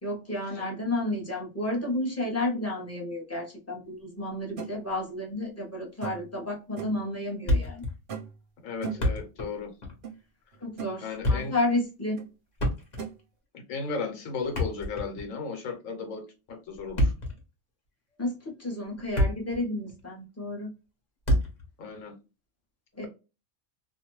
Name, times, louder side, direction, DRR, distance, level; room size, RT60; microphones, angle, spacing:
voice 1, 0.0-7.8 10.6-12.2 18.2-20.7 23.0-23.1, left 1 dB, 15° left, 0.6 m, -31 dB
sound 1, 4.6-4.7 6.0-6.4 6.8-7.0 8.1-8.4 8.8-9.2 10.0-10.2 10.5-11.0 12.2-12.3 13.0-13.1, right 6 dB, 55° right, 0.7 m, -37 dB
Thump thud, 7.5-8.0 8.2-8.3 8.8-9.5 9.8-10.0 11.0-11.6 12.5-13.2 14.4-15.3 16.8-17.4 18.1-18.3 18.8-19.6 19.9-20.0 21.3-21.7, left 1 dB, 40° left, 0.9 m, -27 dB
voice 2, 8.6-9.7 11.0-11.6 13.5-17.1 21.8-22.1, left 4 dB, 85° left, 1.2 m, -35 dB
2.5 x 2.2 x 2.9 m
omnidirectional pair, 1.3 m